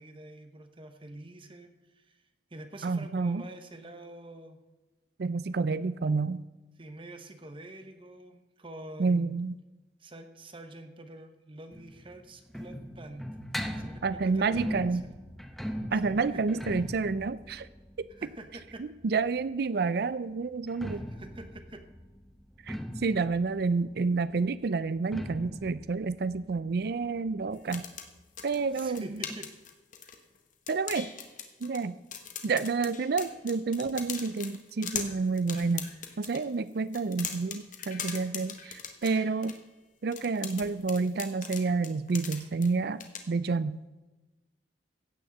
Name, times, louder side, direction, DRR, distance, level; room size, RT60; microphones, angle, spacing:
voice 1, 0.0-2.2 2.5-4.6 6.8-9.4 10.0-13.4 13.8-15.1 16.0-16.4 18.2-18.8 20.9-21.8 28.7-29.5, right 2 dB, 30° right, 7 dB, 1.1 m, -46 dB
voice 2, 2.8-3.4 5.2-6.4 9.0-9.5 14.0-15.0 15.9-17.7 18.8-21.1 22.6-27.8 28.4-29.2 30.7-31.1 31.6-32.0 32.4-35.9 36.2-39.6 40.0-43.8, right 4 dB, 60° right, 16 dB, 0.4 m, -29 dB
sound 1, 11.7-19.4 20.5-27.9 28.2-28.3 28.5-28.6 29.3-29.4, equal, ahead, 0.9 m, -40 dB
sound 2, 27.5-30.4 30.7-31.9 32.1-36.5 36.9-39.6 40.1-42.7 43.0-43.2, left 8 dB, 45° left, 1.5 m, -39 dB
16.0 x 6.4 x 7.8 m, 1.1 s
head